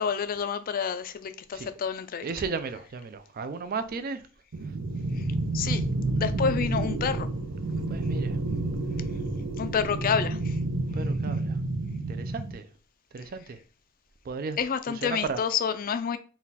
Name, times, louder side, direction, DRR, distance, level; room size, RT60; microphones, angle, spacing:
voice 1, 0.0-2.3 5.1-5.3 5.5-5.8 6.1-7.3 9.6-10.6 14.6-16.2, left 7 dB, 40° left, 0.3 m, -29 dB
voice 2, 2.2-4.2 7.8-8.4 9.8-9.9 10.9-11.6 12.1-12.7 13.1-13.6 14.3-15.4, right 4 dB, 45° right, 0.4 m, -35 dB
sound 1, 4.5-12.5, right 2 dB, 75° right, 0.7 m, -29 dB
4.1 x 2.3 x 4.0 m
head